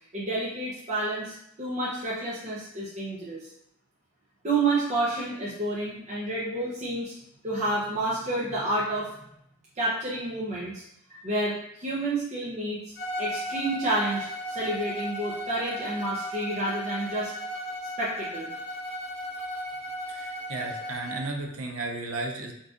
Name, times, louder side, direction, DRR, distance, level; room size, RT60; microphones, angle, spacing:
voice 1, 0.1-3.5 4.4-7.1 7.4-9.1 9.8-10.8 11.1-12.8 13.2-17.3 18.0-18.5, right 2 dB, 35° right, -8 dB, 0.6 m, -29 dB
Bowed string instrument, 12.9-21.3, equal, 55° left, 1.2 m, -35 dB
voice 2, 20.1-22.5, right 2 dB, 80° right, 3 dB, 0.5 m, -34 dB
3.9 x 2.4 x 2.4 m, 0.76 s
head